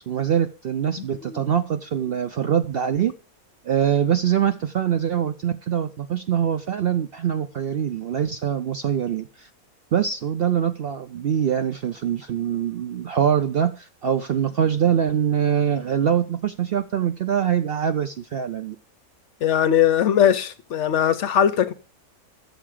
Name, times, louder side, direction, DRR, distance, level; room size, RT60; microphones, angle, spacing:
voice 1, 0.1-3.1 3.6-9.5 9.9-18.8, right 9 dB, 60° right, 0.6 m, -23 dB
voice 2, 19.4-21.7, left 9 dB, 65° left, 0.9 m, -20 dB
11.5 x 6.8 x 4.8 m
omnidirectional pair, 1.5 m